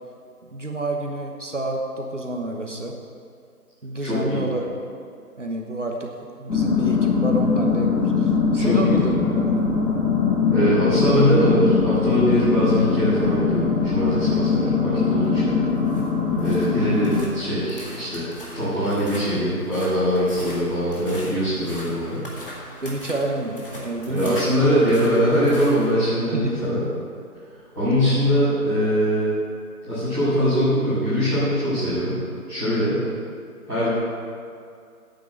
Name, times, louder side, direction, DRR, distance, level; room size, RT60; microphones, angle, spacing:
voice 1, 0.5-3.0 3.8-4.7 5.4-6.1 6.4-9.6 22.7-24.4 26.3-26.6 33.0-33.1, right 2 dB, 50° right, 1 dB, 1.2 m, -28 dB
voice 2, 4.0-4.4 8.5-9.1 10.5-15.6 16.4-22.2 22.5-22.8 24.1-26.8 27.7-29.3 29.8-32.2 32.5-33.0 33.7-33.9, equal, 5° left, -25 dB, 2.8 m, -22 dB
sound 1, 6.5-17.2, left 5 dB, 75° left, 3.3 m, -21 dB
sound 2, 15.7-25.9, left 1 dB, 35° left, 1.9 m, -40 dB
9.2 x 7.9 x 8.2 m, 2.3 s
figure-of-eight pair, 165°, 46 cm